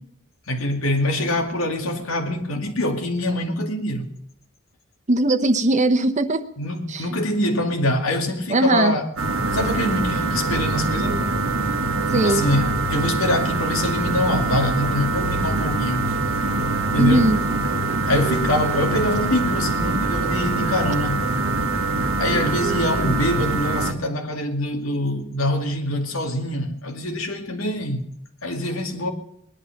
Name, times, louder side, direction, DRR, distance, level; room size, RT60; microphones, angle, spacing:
voice 1, 0.5-4.1 6.6-9.1 9.5-11.3 12.1-16.1 16.9-17.3 18.1-21.3 22.2-28.1 28.4-29.1, left 1 dB, 90° left, 2.3 m, -24 dB
voice 2, 5.1-6.4 6.9-7.0 8.5-8.9 12.1-12.4 17.0-17.4, right 2 dB, 35° right, 1.0 m, -19 dB
sound 1, 9.2-23.9, right 3 dB, 75° right, 1.3 m, -24 dB
20.0 x 11.5 x 5.9 m
head